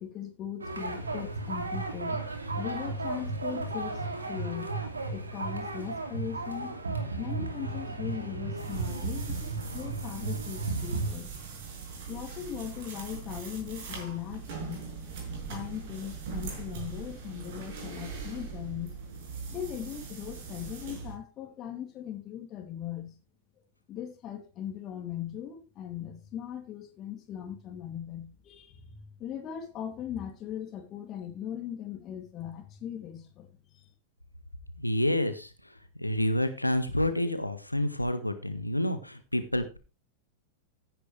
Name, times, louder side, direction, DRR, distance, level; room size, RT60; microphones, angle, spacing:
voice 1, 0.0-4.7 5.1-6.7 7.2-11.3 12.1-14.8 15.5-18.9 19.5-23.1 23.9-33.9, left 10 dB, 35° left, 2 dB, 2.8 m, -39 dB
sound 1, 0.6-11.1, right 3 dB, 75° right, 2.5 m, -34 dB
sound 2, 8.6-21.2, right 5 dB, 50° right, 6.4 m, -41 dB
voice 2, 34.8-35.5 36.0-39.8, left 1 dB, 85° left, 9 dB, 1.6 m, -28 dB
15.5 x 10.5 x 3.4 m, 0.32 s
figure-of-eight pair, 90°, 0 cm